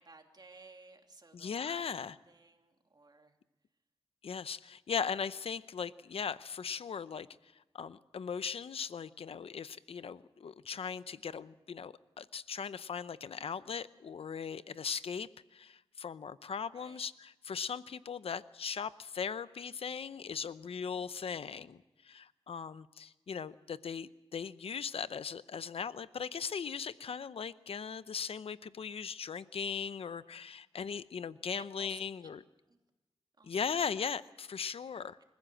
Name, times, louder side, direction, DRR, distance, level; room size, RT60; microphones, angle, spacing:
voice 1, 0.0-3.4 16.7-17.0 31.5-32.3 32.7-32.8 33.4-33.8, right 3 dB, 45° right, 4 dB, 2.9 m, -57 dB
voice 2, 1.3-2.1 4.2-7.3 7.7-32.4 33.4-35.2, left 6 dB, 75° left, 15 dB, 0.7 m, -39 dB
27.0 x 15.0 x 7.8 m, 1.0 s
wide cardioid pair, 80°, 10 cm